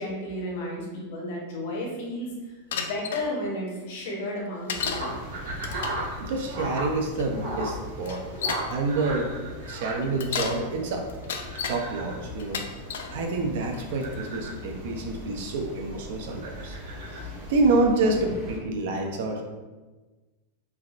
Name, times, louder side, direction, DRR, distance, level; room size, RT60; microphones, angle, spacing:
voice 1, 0.0-5.2, left 1 dB, 55° left, -2 dB, 0.8 m, -33 dB
Bicycle, 2.7-3.3 4.7-5.1 5.6-6.0 7.1-7.2 8.0-8.7 10.0-10.6 11.1-11.8 12.4-13.1 13.7-14.1, left 6 dB, 80° left, 0.3 m, -32 dB
sound 1, 4.7-18.6, left 1 dB, 5° right, 0.7 m, -42 dB
Croaking Frogs, 4.7-17.8, right 1 dB, 75° right, 1.1 m, -38 dB
voice 2, 6.2-8.2 8.7-9.3 9.7-11.1 11.7-12.6 13.1-16.8 17.5-19.4, right 3 dB, 55° right, 3 dB, 0.4 m, -27 dB
3.2 x 2.4 x 2.4 m, 1.2 s
supercardioid pair, 175°, 0 cm